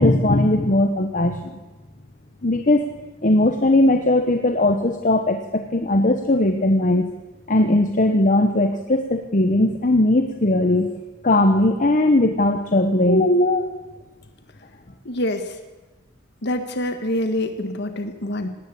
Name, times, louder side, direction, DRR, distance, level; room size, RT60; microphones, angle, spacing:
voice 1, 0.0-1.6 2.4-2.9 3.2-7.1 7.5-10.9 11.2-13.7, left 1 dB, 40° left, 6 dB, 1.0 m, -18 dB
voice 2, 15.0-15.5 16.4-18.5, left 1 dB, 55° left, 7 dB, 1.5 m, -26 dB
19.0 x 18.0 x 8.5 m, 1.2 s
head